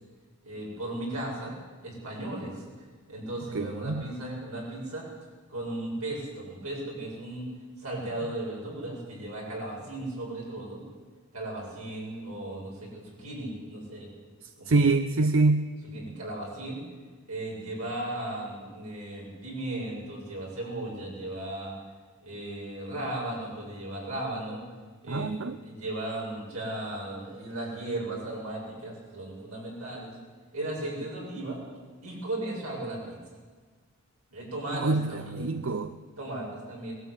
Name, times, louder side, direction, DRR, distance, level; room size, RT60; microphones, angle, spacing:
voice 1, 0.4-1.5 1.8-2.6 3.1-5.0 5.5-7.5 7.8-10.8 11.3-14.1 14.6-14.9 15.8-16.8 17.3-21.7 22.2-24.6 25.0-25.3 25.6-30.1 30.5-31.6 32.0-33.2 34.3-35.5 36.2-37.0, right 1 dB, 90° right, -3 dB, 8.0 m, -36 dB
voice 2, 3.5-4.0 14.7-15.7 25.1-25.6 34.7-35.9, right 3 dB, 65° right, 10 dB, 0.7 m, -25 dB
21.0 x 12.5 x 9.9 m, 1.5 s
head